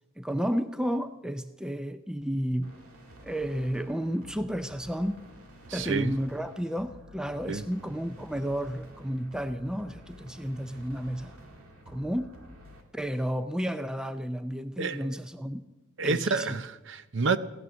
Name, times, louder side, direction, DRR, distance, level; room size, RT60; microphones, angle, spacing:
voice 1, 0.2-2.7 3.2-5.2 5.7-11.3 11.9-12.3 12.9-15.6 16.0-16.6, equal, 5° right, 0.4 m, -32 dB
sound 1, 2.6-12.8, equal, 90° right, 2.3 m, -50 dB
voice 2, 5.7-6.1 7.5-7.6 14.8-15.1 16.0-17.4, right 4 dB, 60° right, 0.7 m, -29 dB
16.5 x 12.5 x 6.3 m
head